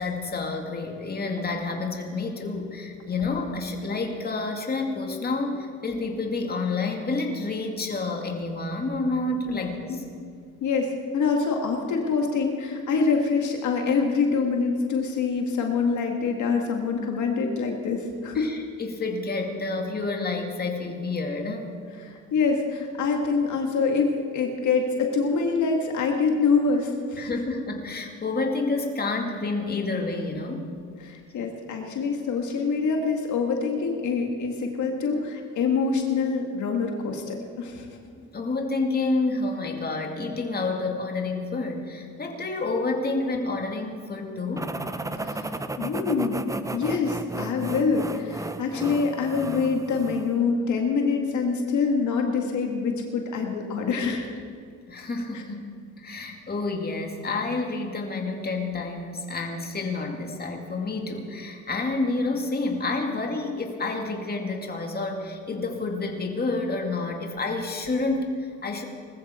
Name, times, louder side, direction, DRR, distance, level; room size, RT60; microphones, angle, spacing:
voice 1, 0.0-10.0 18.3-21.7 27.2-30.7 38.3-44.7 54.9-68.8, left 3 dB, 30° left, 2 dB, 2.2 m, -29 dB
voice 2, 9.5-10.0 10.6-18.5 21.9-27.3 31.0-37.9 45.2-45.5 45.8-46.5 46.7-54.2 55.3-55.4, left 5 dB, 75° left, 2 dB, 2.0 m, -25 dB
sound 1, 44.6-50.4, right 2 dB, 10° right, 0.7 m, -34 dB
20.0 x 14.0 x 4.4 m, 2.3 s
cardioid pair, 90°, 30 cm